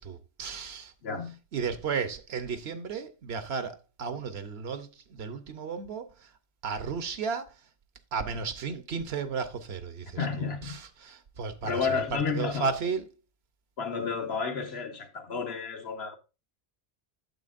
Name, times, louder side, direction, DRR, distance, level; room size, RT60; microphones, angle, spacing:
voice 1, 0.0-0.9 1.5-6.3 6.6-7.5 8.1-13.1, right 5 dB, 70° right, 1.1 m, -34 dB
voice 2, 1.0-1.4 10.2-10.8 11.6-12.7 13.8-16.1, left 5 dB, 70° left, 1.5 m, -31 dB
9.3 x 7.2 x 2.5 m
omnidirectional pair, 1.1 m